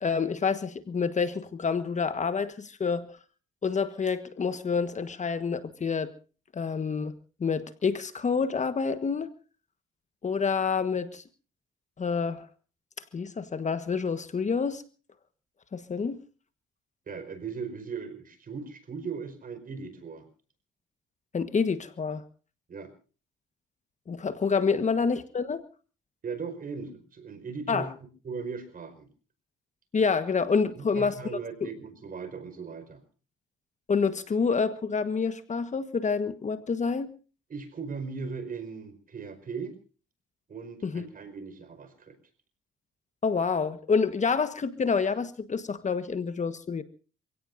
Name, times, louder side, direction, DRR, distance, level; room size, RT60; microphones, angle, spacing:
voice 1, 0.0-3.2 3.6-6.1 6.5-7.1 7.4-9.3 10.2-11.2 12.0-12.5 13.1-14.8 15.7-16.2 21.3-22.2 24.1-25.6 27.7-27.9 29.9-31.1 31.6-31.7 33.9-37.1 40.8-41.0 43.2-46.8, left 5 dB, 35° left, 11 dB, 1.4 m, -28 dB
voice 2, 17.1-20.3 22.7-22.9 24.6-24.7 26.2-27.9 28.2-29.1 30.7-33.0 37.5-39.8 40.5-42.1, right 5 dB, 45° right, 10 dB, 4.9 m, -38 dB
28.5 x 17.0 x 2.7 m, 0.37 s
cardioid pair, 90°, 20 cm